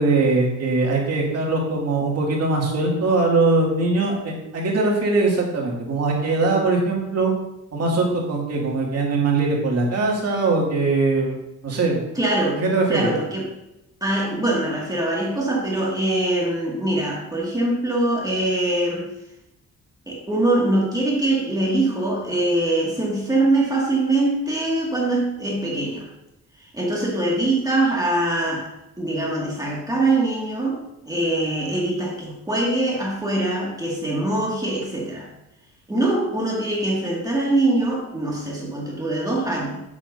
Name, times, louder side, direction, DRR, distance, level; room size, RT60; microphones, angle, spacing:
voice 1, 0.0-7.3 7.7-11.4 11.6-12.0 12.6-13.1, right 3 dB, 55° right, -2 dB, 2.3 m, -21 dB
voice 2, 12.1-12.6 12.9-13.4 14.0-19.1 20.1-26.1 26.7-28.7 29.0-35.3 35.9-39.8, right 2 dB, 10° right, -3 dB, 2.0 m, -23 dB
7.7 x 7.2 x 2.6 m, 0.87 s
cardioid pair, 90°, 30 cm